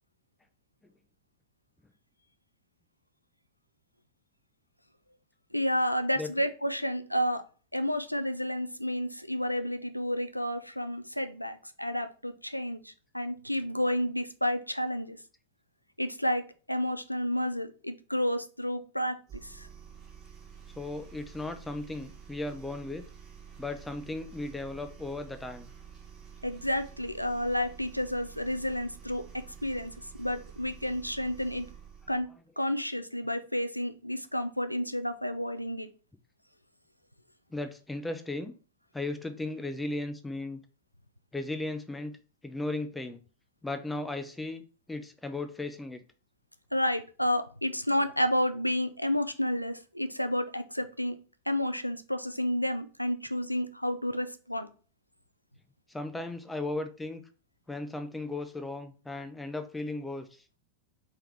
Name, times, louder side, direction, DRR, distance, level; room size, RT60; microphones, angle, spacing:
voice 1, 5.5-7.4 7.7-15.2 16.0-19.7 26.4-29.9 30.2-31.7 32.1-32.3 32.6-35.9 46.7-51.2 51.5-54.7, equal, 90° left, 0.4 m, -31 dB
sound 1, 19.3-32.2, right 7 dB, 30° right, 1.2 m, -49 dB
voice 2, 20.7-23.0 23.6-25.7 37.5-38.5 38.9-40.6 41.3-42.1 42.4-43.2 43.6-46.0 55.9-57.2 57.7-60.4, left 2 dB, 5° left, 0.5 m, -36 dB
3.4 x 3.3 x 3.4 m
figure-of-eight pair, 90°, 0 cm